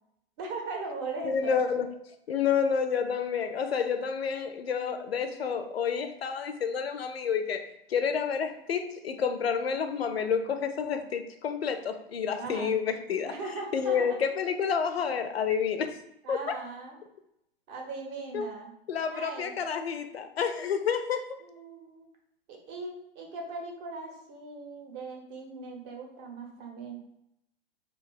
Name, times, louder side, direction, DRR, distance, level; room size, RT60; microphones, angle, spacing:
voice 1, 0.4-1.5 12.4-12.7 13.3-14.2 16.2-17.0 17.7-18.7 19.1-19.5 21.4-22.1 22.5-27.0, right 3 dB, 30° right, 1 dB, 0.7 m, -39 dB
voice 2, 1.2-1.9 2.3-13.3 13.7-15.9 16.3-16.4 18.3-18.5 18.9-21.4, left 6 dB, 75° left, 8 dB, 0.5 m, -29 dB
2.4 x 2.3 x 3.8 m, 0.79 s
figure-of-eight pair, 105°, 31 cm